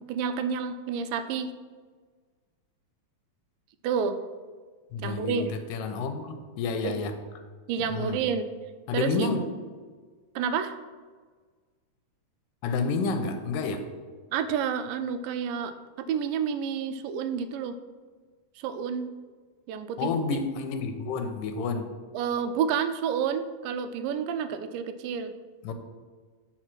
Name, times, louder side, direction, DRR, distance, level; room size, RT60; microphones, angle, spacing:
voice 1, 0.0-1.5 3.8-4.2 5.0-5.5 6.8-6.9 7.7-8.4 8.9-9.3 10.4-10.7 14.3-15.7 16.1-17.8 18.6-19.1 19.7-20.1 22.1-25.3, right 7 dB, 90° right, 10 dB, 2.3 m, -29 dB
voice 2, 4.9-7.1 7.8-8.2 8.9-9.5 12.6-13.8 20.0-21.9 25.6-25.7, left 4 dB, 80° left, 7 dB, 2.4 m, -29 dB
8.7 x 4.9 x 6.0 m, 1.5 s
omnidirectional pair, 3.8 m